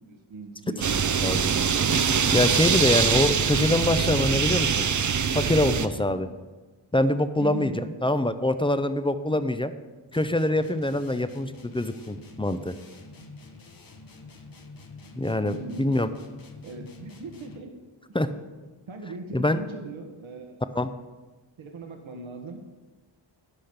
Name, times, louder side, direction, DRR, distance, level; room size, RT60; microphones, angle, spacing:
voice 1, 0.1-1.5 5.9-6.2 7.4-7.8 13.2-13.3 14.9-15.1 15.5-16.0 16.6-17.8 18.1-18.2 18.9-20.6 21.6-22.7, right 3 dB, 70° right, 3 dB, 1.4 m, -39 dB
sound 1, 0.8-5.9, right 6 dB, 40° right, 0.6 m, -23 dB
voice 2, 2.3-4.9 5.3-6.3 6.9-7.7 8.0-9.7 10.1-12.7 15.2-16.1 18.1-18.3 19.3-19.6 20.8-20.9, left 1 dB, 10° left, 11 dB, 0.6 m, -24 dB
sound 2, 10.1-17.8, left 3 dB, 45° left, 1.3 m, -47 dB
11.5 x 5.2 x 8.0 m, 1.2 s
cardioid pair, 75°, 49 cm